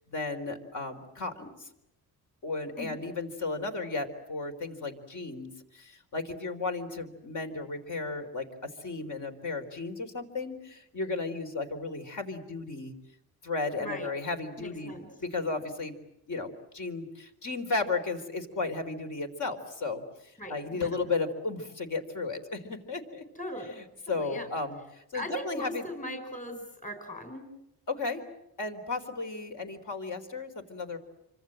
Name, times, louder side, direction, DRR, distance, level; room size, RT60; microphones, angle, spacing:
voice 1, 0.1-1.7 2.4-12.9 13.4-15.9 16.3-23.2 24.1-25.8 27.9-28.2 28.6-31.0, left 3 dB, 50° left, 6 dB, 4.0 m, -34 dB
voice 2, 14.6-15.1 20.4-20.6 20.8-21.1 23.3-23.7 24.1-24.5 25.1-27.5, equal, 20° left, 6 dB, 4.9 m, -39 dB
27.0 x 25.5 x 7.8 m, 0.85 s
cardioid pair, 120°, 39 cm